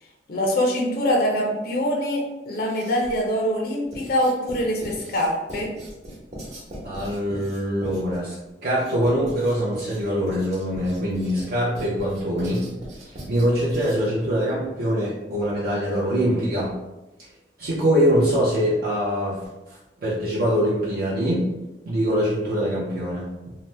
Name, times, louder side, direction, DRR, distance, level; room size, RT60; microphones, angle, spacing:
voice 1, 0.3-5.7, equal, 55° left, 0 dB, 0.5 m, -24 dB
Writing, 2.5-3.3 3.9-14.2, equal, 40° right, 0.9 m, -40 dB
voice 2, 6.8-8.3 8.6-12.7 13.0-16.7 17.6-19.4 20.0-21.5 21.9-23.5, equal, 55° right, -6 dB, 0.5 m, -23 dB
2.8 x 2.0 x 3.2 m, 1.0 s
head